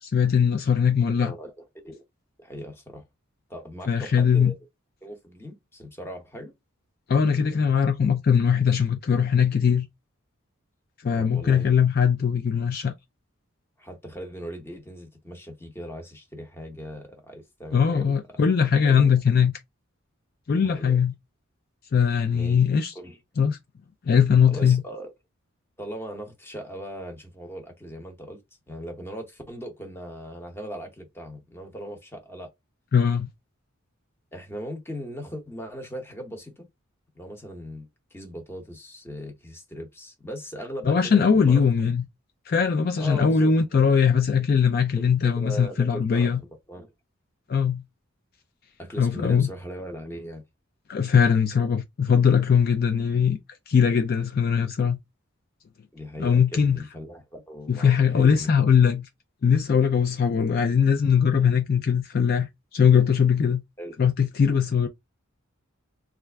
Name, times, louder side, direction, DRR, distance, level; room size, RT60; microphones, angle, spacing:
voice 1, 0.0-1.3 3.9-4.5 7.1-9.9 11.0-12.9 17.7-19.5 20.5-21.1 21.9-22.9 23.4-23.6 24.0-24.8 32.9-33.3 40.8-42.0 42.5-46.4 47.5-47.8 49.0-49.5 50.9-53.4 53.7-55.0 56.2-56.8 57.7-59.1 59.4-63.6 64.0-64.9, left 7 dB, 45° left, 0.3 m, -21 dB
voice 2, 1.2-1.5 1.8-2.0 2.4-3.1 3.5-4.5 5.0-6.5 11.1-11.7 13.8-18.1 18.8-19.1 20.6-21.0 22.3-22.6 22.9-23.2 24.5-25.1 25.8-28.4 28.7-32.5 34.3-36.7 37.1-41.6 43.0-43.5 44.9-46.9 48.8-50.4 55.9-58.5 63.8-64.1, equal, 10° left, 0.8 m, -39 dB
3.3 x 2.4 x 3.4 m
head